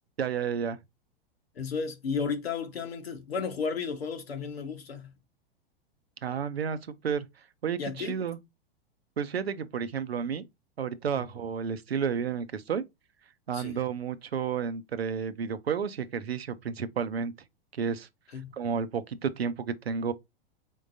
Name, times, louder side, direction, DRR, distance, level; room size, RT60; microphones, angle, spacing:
voice 1, 0.2-0.8 6.2-6.8 7.0-7.3 7.6-8.4 9.2-10.4 10.8-12.8 13.5-17.3 17.7-18.1 18.5-20.1, right 7 dB, 85° right, 0.6 m, -31 dB
voice 2, 1.5-5.1 7.8-8.1 11.1-11.2 13.5-13.8 18.3-18.5, left 5 dB, 80° left, 1.1 m, -33 dB
4.5 x 3.7 x 2.5 m
hypercardioid pair, 100°, 30 cm